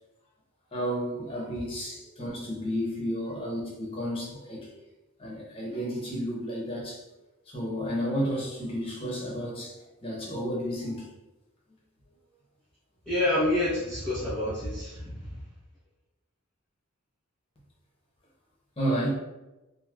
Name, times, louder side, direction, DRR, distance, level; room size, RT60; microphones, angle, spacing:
voice 1, 0.7-4.7 5.2-7.0 7.5-9.7 10.0-11.1 18.8-19.1, equal, 25° left, -4 dB, 0.8 m, -32 dB
voice 2, 13.0-15.4, left 1 dB, 5° left, -13 dB, 1.0 m, -28 dB
3.1 x 2.6 x 2.4 m, 1.0 s
head